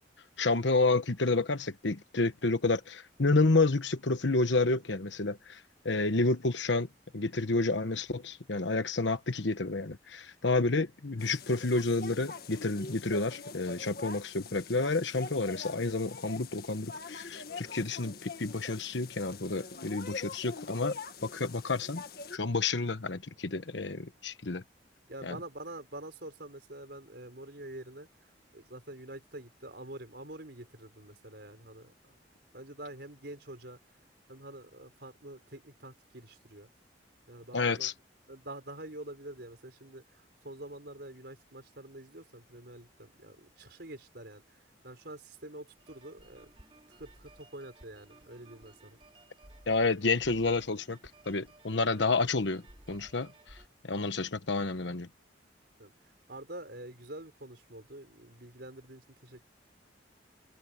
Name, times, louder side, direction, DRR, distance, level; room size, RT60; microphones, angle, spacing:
voice 1, 0.4-6.9 7.1-21.0 21.2-22.0 22.3-24.6 25.2-25.3 37.5-37.9 49.7-51.0 51.3-52.6 52.9-53.6 53.8-55.1, left 3 dB, 80° left, 1.2 m, -30 dB
sound 1, 11.2-22.4, left 4 dB, 55° left, 1.9 m, -44 dB
voice 2, 25.1-32.2 32.5-33.8 34.3-36.7 37.3-37.9 38.3-46.5 46.9-49.0 55.8-59.4, right 1 dB, 60° right, 5.1 m, -47 dB
sound 2, 45.8-53.7, right 1 dB, 30° right, 5.2 m, -57 dB
head